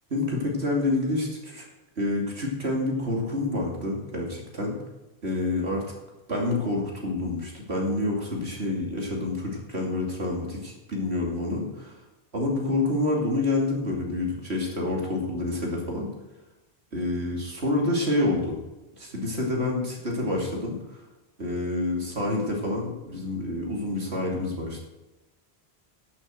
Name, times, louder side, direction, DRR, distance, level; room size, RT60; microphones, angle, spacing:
voice 1, 0.1-1.7 2.0-4.7 5.2-5.8 6.3-11.9 12.3-16.1 16.9-18.6 19.0-21.0 21.4-24.8, left 2 dB, 80° right, -1 dB, 3.1 m, -28 dB
11.0 x 7.6 x 7.8 m, 1.0 s
omnidirectional pair, 1.1 m